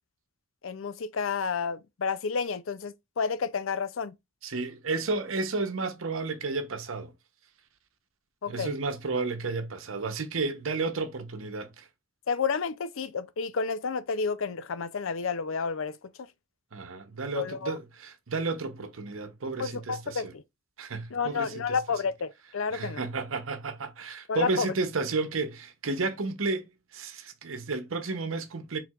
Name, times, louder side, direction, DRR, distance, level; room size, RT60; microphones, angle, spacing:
voice 1, 0.6-4.1 8.4-8.7 12.3-16.0 17.3-17.8 19.6-20.4 21.1-23.0 24.3-24.7, left 5 dB, 65° left, 0.5 m, -30 dB
voice 2, 4.4-7.1 8.5-11.9 16.7-20.3 20.8-21.8 22.7-28.8, right 3 dB, 75° right, 0.9 m, -32 dB
4.6 x 3.8 x 2.4 m
head